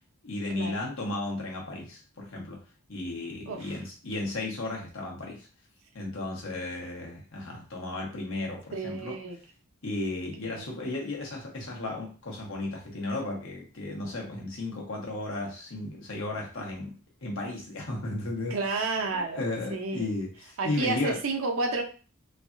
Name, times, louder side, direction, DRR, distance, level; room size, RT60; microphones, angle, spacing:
voice 1, 0.2-2.6 2.9-5.5 5.9-9.2 9.8-21.2, left 2 dB, 70° left, -2 dB, 1.1 m, -34 dB
voice 2, 8.7-9.4 10.4-10.6 18.5-19.4 19.7-20.1 20.6-21.8, right 3 dB, 75° right, 3 dB, 0.6 m, -30 dB
3.3 x 2.3 x 2.5 m, 0.36 s
head